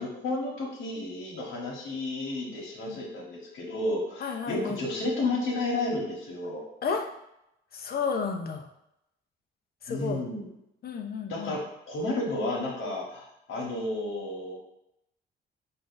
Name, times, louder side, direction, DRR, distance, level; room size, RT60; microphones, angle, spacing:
voice 1, 0.0-6.7 9.9-10.5 11.3-11.6 11.9-14.6, left 2 dB, 90° left, -3 dB, 1.3 m, -32 dB
voice 2, 4.2-4.8 6.8-7.0 7.7-8.7 9.8-10.2 10.8-11.6, left 5 dB, 50° left, 3 dB, 0.7 m, -32 dB
4.3 x 2.6 x 3.9 m, 0.82 s
cardioid pair, 90°, 20 cm